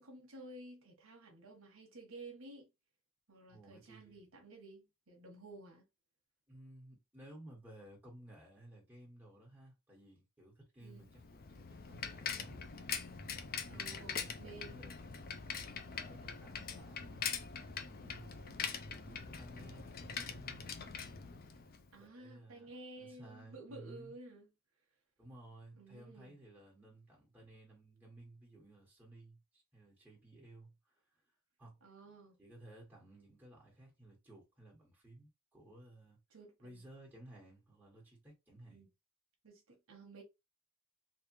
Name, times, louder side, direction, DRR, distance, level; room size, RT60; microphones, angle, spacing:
voice 1, 0.0-2.7 3.3-5.9 10.8-11.1 13.7-14.8 21.9-24.5 25.8-26.4 31.8-32.4 36.3-36.8 38.7-38.9 39.4-40.2, right 2 dB, 70° right, 1.1 m, -53 dB
voice 2, 3.5-4.3 6.5-12.6 13.7-14.9 15.9-17.3 18.0-18.8 19.0-20.8 22.0-22.7 23.0-24.1 25.2-31.0 31.6-31.8 32.4-36.2 36.6-38.9, right 1 dB, 10° right, 1.7 m, -57 dB
Bicycle, 11.0-21.9, left 6 dB, 45° left, 0.5 m, -43 dB
3.3 x 2.5 x 3.0 m
head